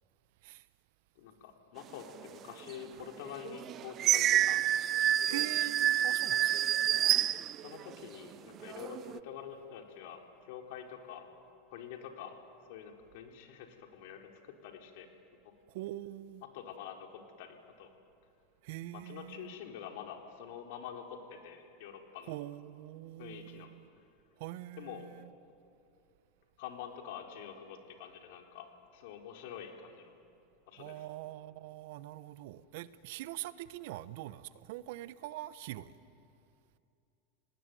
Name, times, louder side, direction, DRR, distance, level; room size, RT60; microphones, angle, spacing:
voice 1, 1.2-4.6 5.2-5.5 7.6-11.3 11.7-12.4 12.7-15.1 16.5-17.9 18.9-22.4 23.2-23.7 24.8-25.1 26.6-30.1 30.7-31.0, left 8 dB, 70° left, 4.0 m, -46 dB
sound 1, 2.6-2.7 3.3-8.1 8.6-9.2, right 11 dB, 45° right, 0.6 m, -28 dB
voice 2, 5.2-6.5 15.7-16.4 18.6-19.5 22.3-23.9 24.4-25.2 30.8-35.9, right 15 dB, 70° right, 1.0 m, -43 dB
29.5 x 19.5 x 9.4 m
hypercardioid pair, 95°, 0 cm